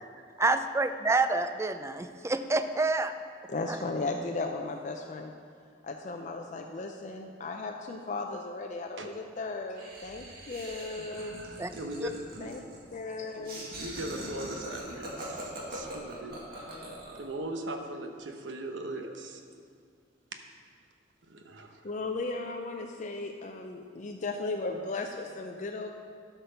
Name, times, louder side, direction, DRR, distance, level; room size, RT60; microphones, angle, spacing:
voice 1, 0.4-3.1 3.7-3.8 11.6-11.7 12.0-12.1, right 3 dB, 15° right, 10 dB, 0.4 m, -28 dB
voice 2, 3.5-5.3 5.8-11.4 12.4-12.6 12.9-13.6 16.7-17.0 21.8-25.9, left 3 dB, 40° left, 3 dB, 0.5 m, -36 dB
Laughter, 9.8-17.3, right 1 dB, 55° right, 1.9 m, -42 dB
voice 3, 10.9-12.6 13.4-16.4 17.1-19.4 21.3-21.9, right 1 dB, 85° right, 5 dB, 1.0 m, -39 dB
12.5 x 5.9 x 5.6 m, 2.1 s
head